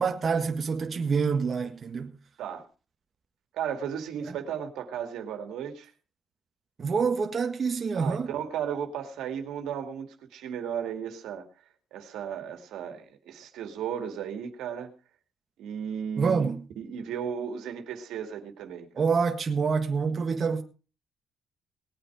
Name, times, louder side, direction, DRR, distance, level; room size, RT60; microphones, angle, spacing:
voice 1, 0.0-2.1 6.8-8.3 16.2-16.6 18.9-20.6, right 5 dB, 45° right, 1.7 m, -26 dB
voice 2, 3.5-5.9 7.9-11.4 11.9-14.9 15.6-16.5 16.8-19.0, right 8 dB, 85° right, 2.3 m, -35 dB
19.5 x 8.9 x 4.8 m
cardioid pair, 90°, 0 cm